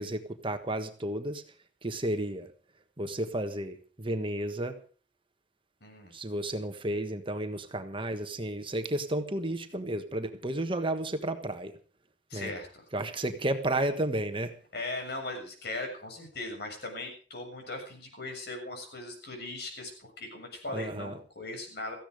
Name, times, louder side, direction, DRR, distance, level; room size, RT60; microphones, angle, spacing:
voice 1, 0.0-1.4 1.8-2.5 3.0-4.8 6.1-11.7 12.3-12.5 12.9-14.5 20.7-21.2, right 1 dB, 30° right, 7 dB, 1.4 m, -32 dB
voice 2, 5.8-6.1 12.3-12.7 14.7-21.9, left 2 dB, 60° left, 3 dB, 7.0 m, -39 dB
17.5 x 15.0 x 5.1 m, 0.40 s
head